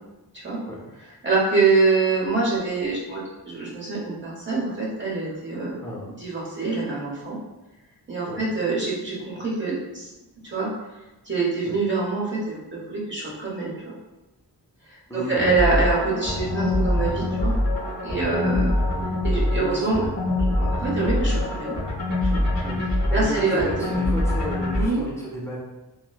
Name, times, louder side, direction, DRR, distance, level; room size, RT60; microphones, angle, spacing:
voice 1, 1.2-3.2 3.5-5.8 6.2-7.4 8.1-10.1 10.4-10.7 11.3-13.9 14.9-17.5 18.0-18.7 19.2-20.0 20.6-21.7 22.3-22.4 23.1-23.9 24.8-25.0, right 4 dB, 30° right, -6 dB, 0.9 m, -25 dB
voice 2, 15.1-15.4 18.5-18.7 19.5-20.1 22.6-25.6, equal, 5° left, -6 dB, 0.6 m, -33 dB
sound 1, 15.4-24.9, left 1 dB, 45° right, 1.4 m, -24 dB
2.9 x 2.0 x 2.3 m, 1.0 s
wide cardioid pair, 100°, 39 cm